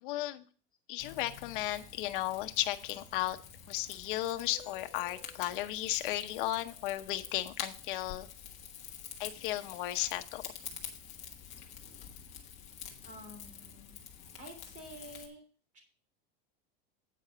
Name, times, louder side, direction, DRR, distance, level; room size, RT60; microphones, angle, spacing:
voice 1, 0.0-0.4 0.9-3.4 3.7-8.3 9.2-10.4, left 15 dB, 60° left, 8 dB, 0.9 m, -35 dB
Rain / Fire, 1.0-15.3, left 8 dB, 25° left, 1.4 m, -48 dB
voice 2, 13.0-14.0 14.4-15.4 15.7-15.8, right 1 dB, 25° right, 3 dB, 3.1 m, -49 dB
9.0 x 4.9 x 6.7 m, 0.40 s
supercardioid pair, 175°, 30 cm